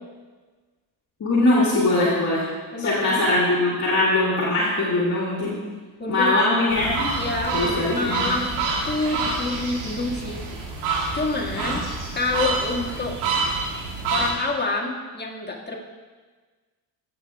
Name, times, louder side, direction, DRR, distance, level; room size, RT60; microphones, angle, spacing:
voice 1, 1.2-2.5 2.8-5.6 6.1-7.2 7.5-8.3 11.5-11.8, left 2 dB, 35° left, -6 dB, 2.1 m, -21 dB
voice 2, 2.7-3.0 6.0-6.3 7.2-7.6 7.9-10.6 11.1-11.9 12.1-13.2 14.1-15.8, left 3 dB, 20° left, -1 dB, 1.9 m, -27 dB
sound 1, 6.7-14.3, right 3 dB, 75° right, 2.4 m, -27 dB
15.5 x 6.8 x 2.3 m, 1.4 s
hypercardioid pair, 60°, 47 cm